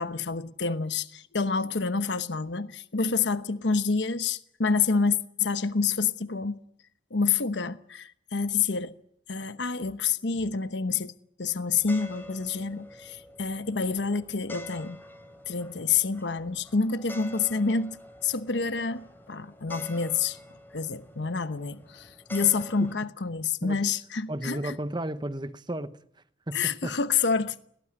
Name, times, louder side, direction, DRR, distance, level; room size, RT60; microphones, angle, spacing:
voice 1, 0.0-6.6 7.1-9.0 9.3-11.1 11.4-15.0 15.5-20.4 20.7-24.8 26.5-27.6, left 5 dB, 80° left, 1.0 m, -28 dB
sound 1, 11.8-22.9, left 1 dB, 10° left, 3.5 m, -47 dB
voice 2, 24.3-26.0 26.5-26.9, right 1 dB, 25° right, 1.1 m, -33 dB
21.5 x 18.5 x 9.8 m
head